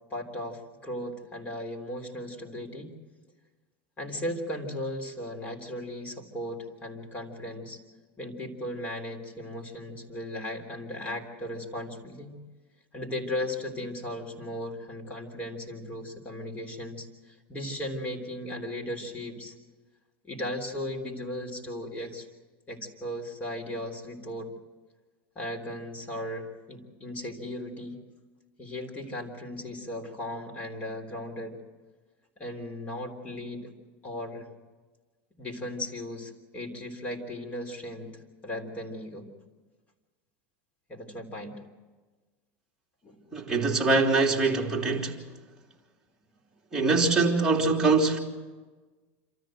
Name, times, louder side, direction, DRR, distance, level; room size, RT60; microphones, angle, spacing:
voice 1, 0.1-2.9 4.0-7.8 8.2-12.3 12.9-19.6 20.2-22.3 22.7-24.5 25.4-28.0 28.6-31.6 32.4-33.7 34.0-34.5 35.4-39.3 40.9-41.5 43.0-43.2, left 1 dB, 20° left, 3.5 m, -36 dB
voice 2, 43.3-45.2 46.7-48.2, right 3 dB, 10° right, 3.4 m, -23 dB
27.0 x 14.0 x 7.7 m
supercardioid pair, 130°, 6 cm